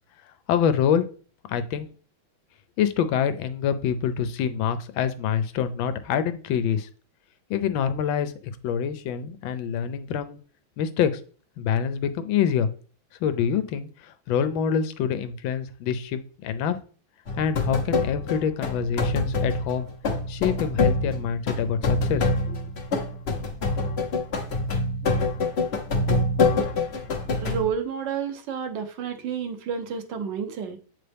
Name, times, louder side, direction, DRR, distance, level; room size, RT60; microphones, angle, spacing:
voice 1, 0.5-1.0 1.5-1.9 2.8-6.9 7.5-10.4 10.8-11.1 11.6-12.7 13.2-16.8 17.4-19.9 20.3-22.6, left 8 dB, 80° left, 11 dB, 1.4 m, -26 dB
sound 1, 17.3-27.7, left 3 dB, 50° left, 0.8 m, -25 dB
voice 2, 27.4-30.8, right 7 dB, 70° right, 6 dB, 1.4 m, -30 dB
7.8 x 4.2 x 3.4 m, 0.40 s
omnidirectional pair, 2.2 m